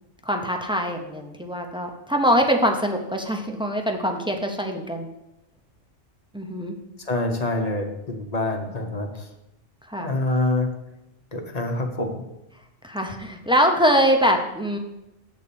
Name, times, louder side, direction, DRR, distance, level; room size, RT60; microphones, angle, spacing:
voice 1, 0.2-5.1 6.3-6.8 9.9-10.1 12.8-14.8, equal, 5° right, 2 dB, 0.4 m, -23 dB
voice 2, 7.1-9.1 10.0-10.7 11.3-12.2, left 2 dB, 35° left, 3 dB, 0.9 m, -26 dB
8.0 x 4.2 x 6.8 m, 0.91 s
omnidirectional pair, 1.4 m